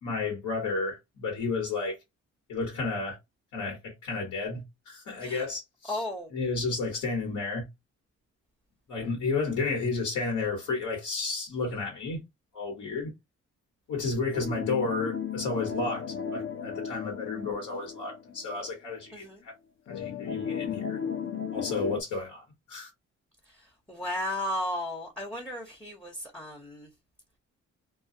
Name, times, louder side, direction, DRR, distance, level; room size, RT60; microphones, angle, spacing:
voice 1, 0.0-2.0 2.5-3.2 3.5-6.0 6.3-7.6 8.9-12.2 12.5-13.1 13.9-19.5 19.9-21.0 21.5-22.9, left 3 dB, 75° left, 1.2 m, -32 dB
voice 2, 5.9-6.3 19.1-19.4 23.5-26.9, left 1 dB, 5° left, 0.7 m, -35 dB
sound 1, 14.3-18.7 19.1-19.2 19.9-22.0, left 7 dB, 45° left, 0.4 m, -35 dB
2.2 x 2.2 x 2.6 m
cardioid pair, 90°, 30 cm